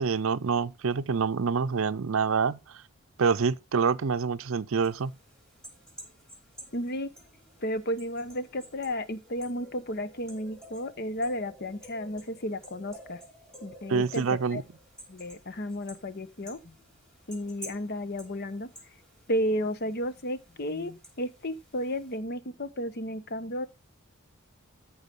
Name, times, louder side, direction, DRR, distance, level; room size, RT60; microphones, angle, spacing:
voice 1, 0.0-2.6 3.2-5.1 13.9-14.6, right 5 dB, 70° right, 0.5 m, -26 dB
sound 1, 4.8-22.2, equal, 5° left, 5.0 m, -52 dB
voice 2, 6.7-7.1 7.6-13.2 13.6-14.6 15.1-16.8 17.3-18.7 19.3-23.7, equal, 45° left, 0.9 m, -33 dB
13.5 x 4.8 x 5.3 m
head